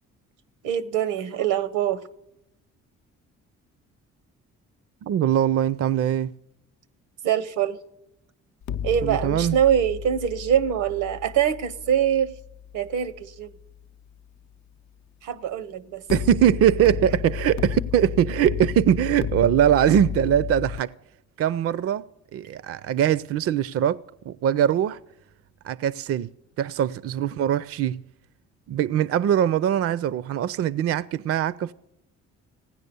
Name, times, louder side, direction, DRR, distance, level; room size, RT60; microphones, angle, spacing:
voice 1, 0.6-2.0 7.2-7.8 8.8-12.3 12.7-13.5 15.2-16.0, right 9 dB, 90° right, 0.9 m, -24 dB
voice 2, 5.0-6.3 9.0-9.6 16.1-20.9 21.4-22.0 22.3-24.0 24.3-25.0 25.6-26.3 26.6-28.0 28.7-31.7, right 10 dB, 50° right, 0.4 m, -22 dB
sound 1, 8.6-13.7 16.1-20.8, left 9 dB, 70° left, 0.5 m, -33 dB
16.5 x 9.7 x 6.8 m
cardioid pair, 90°, 30 cm